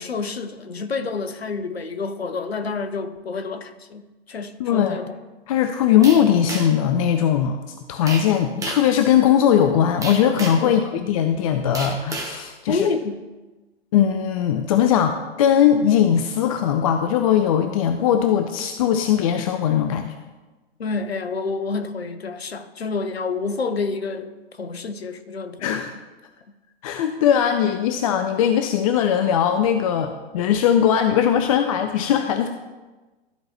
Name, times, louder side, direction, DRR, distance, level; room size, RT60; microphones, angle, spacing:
voice 1, 0.0-5.1 10.6-10.8 12.7-13.3 20.8-25.8, left 4 dB, 85° left, 9 dB, 0.8 m, -28 dB
voice 2, 4.6-5.0 5.5-7.6 7.9-12.9 13.9-20.1 25.6-25.9 26.8-32.5, left 9 dB, 35° left, 7 dB, 0.5 m, -19 dB
sound 1, 6.0-6.9 8.1-8.3 8.6-8.9 10.0-10.7 11.7-12.4, right 3 dB, 10° right, 1.0 m, -31 dB
13.5 x 4.7 x 3.0 m, 1.2 s
figure-of-eight pair, 115°, 31 cm